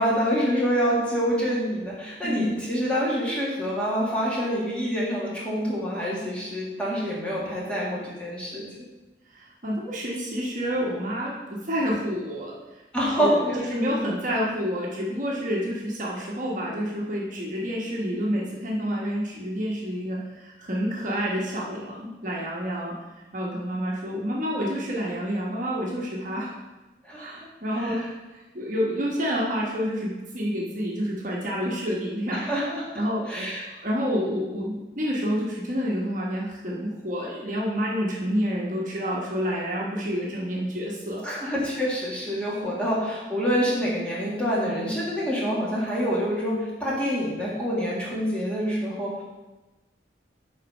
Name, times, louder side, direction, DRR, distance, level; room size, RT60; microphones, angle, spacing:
voice 1, 0.0-8.7 12.9-13.9 27.0-27.4 27.8-28.0 32.3-33.6 41.2-49.2, equal, 5° left, -7 dB, 2.0 m, -26 dB
voice 2, 2.2-2.6 9.3-12.6 13.2-13.4 13.7-22.9 23.3-26.5 27.2-28.0 28.5-32.4 32.9-41.2 42.6-42.7, equal, 45° right, -4 dB, 1.2 m, -28 dB
7.4 x 4.4 x 5.4 m, 1.1 s
head